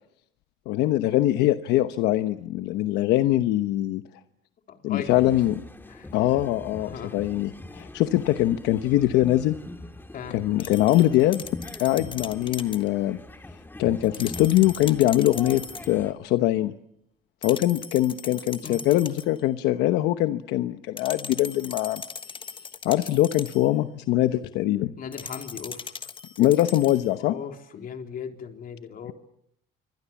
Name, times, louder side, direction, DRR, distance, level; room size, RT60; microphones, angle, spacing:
voice 1, 0.7-4.0 4.8-5.6 6.1-9.5 10.3-11.4 11.8-13.2 13.8-16.7 17.4-22.0 22.8-24.9 26.4-27.3, left 14 dB, 90° left, 10 dB, 1.0 m, -22 dB
voice 2, 4.7-5.3 5.9-6.1 6.8-7.1 10.1-10.4 18.6-18.8 25.0-26.0 27.2-29.1, left 7 dB, 55° left, 5 dB, 3.6 m, -38 dB
sound 1, 5.1-16.1, left 1 dB, 10° left, 2.4 m, -42 dB
sound 2, 10.6-12.9 14.0-16.0 17.4-19.4 21.0-23.7 25.1-27.1, left 5 dB, 30° left, 1.4 m, -40 dB
27.0 x 24.5 x 7.2 m, 0.74 s
cardioid pair, 110°, 17 cm